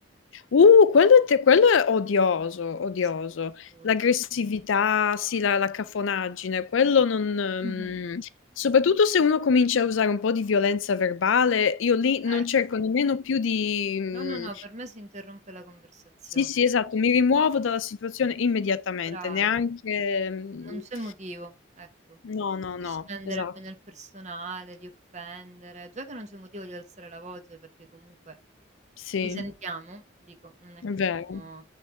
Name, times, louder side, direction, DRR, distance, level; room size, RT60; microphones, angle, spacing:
voice 1, 0.5-8.3 8.6-14.5 16.4-20.8 22.2-23.1 23.4-23.5 29.1-29.4 30.8-31.4, left 6 dB, 75° left, 0.4 m, -23 dB
voice 2, 3.7-4.0 7.6-8.0 12.2-12.4 12.7-12.8 14.1-16.6 19.1-19.6 20.6-22.2 22.8-28.4 29.2-30.8 31.3-31.6, right 2 dB, 35° right, 1.0 m, -40 dB
9.0 x 3.3 x 3.3 m
head